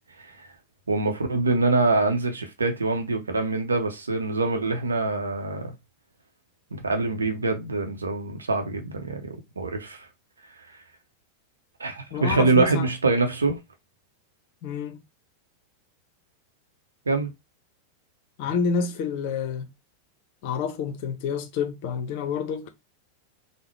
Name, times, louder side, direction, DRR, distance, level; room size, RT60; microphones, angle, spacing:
voice 1, 0.9-5.8 6.7-10.1 11.8-13.6 17.1-17.3, right 3 dB, 75° right, 0.7 m, -25 dB
voice 2, 12.1-12.9 14.6-15.0 18.4-19.7 20.4-22.7, left 6 dB, 45° left, 0.6 m, -28 dB
3.8 x 2.0 x 3.1 m
figure-of-eight pair, 90°, 0 cm